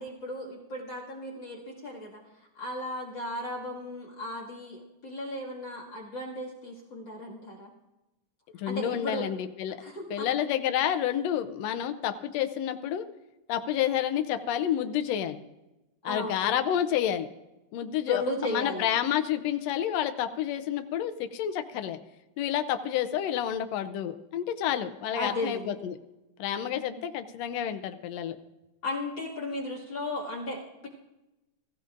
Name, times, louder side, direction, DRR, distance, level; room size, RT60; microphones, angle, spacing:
voice 1, 0.0-2.2 2.6-7.7 8.7-9.3 9.8-10.3 16.1-16.5 18.1-18.9 25.1-25.7 26.6-27.0 28.8-30.9, left 1 dB, 40° left, -1 dB, 2.5 m, -35 dB
voice 2, 8.5-9.8 10.1-13.0 13.5-15.4 16.0-17.3 17.7-22.0 22.4-26.0 26.4-28.4, left 10 dB, 75° left, 8 dB, 1.7 m, -29 dB
21.5 x 15.0 x 2.6 m, 0.98 s
omnidirectional pair, 3.6 m